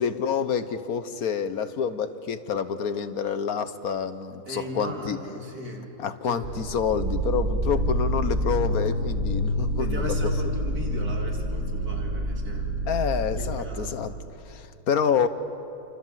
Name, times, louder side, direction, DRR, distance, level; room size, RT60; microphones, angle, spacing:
voice 1, 0.0-5.2 6.0-10.2 12.9-14.1 14.4-15.3, left 7 dB, 75° left, 11 dB, 1.6 m, -28 dB
voice 2, 4.5-5.9 6.2-6.5 9.8-12.7 13.3-13.9, right 1 dB, 90° right, 1 dB, 3.2 m, -36 dB
sound 1, 6.4-14.3, equal, 65° right, 3.4 m, -27 dB
29.5 x 25.5 x 7.6 m, 2.8 s
omnidirectional pair, 1.6 m